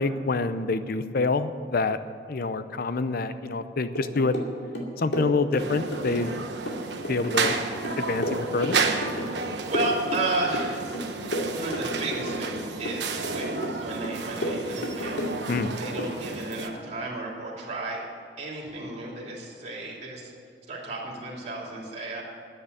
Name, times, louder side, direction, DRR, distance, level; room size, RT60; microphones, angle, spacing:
voice 1, 0.0-2.0 2.3-4.4 5.0-6.4 7.1-7.5 8.0-8.8 15.5-15.7, left 3 dB, 55° left, 12 dB, 0.6 m, -26 dB
sound 1, 4.0-4.5 4.8-6.4 6.7-9.5 9.7-10.7 10.9-12.6 12.9-13.8 14.0-15.7 16.0-16.2, equal, 75° left, 2.4 m, -31 dB
sound 2, 5.6-16.7, right 4 dB, 75° right, 1.1 m, -32 dB
voice 2, 9.7-10.9 11.5-13.5 13.8-18.0 18.4-20.3 20.7-22.2, right 2 dB, 40° right, -4 dB, 3.0 m, -33 dB
10.0 x 9.4 x 9.7 m, 2.3 s
head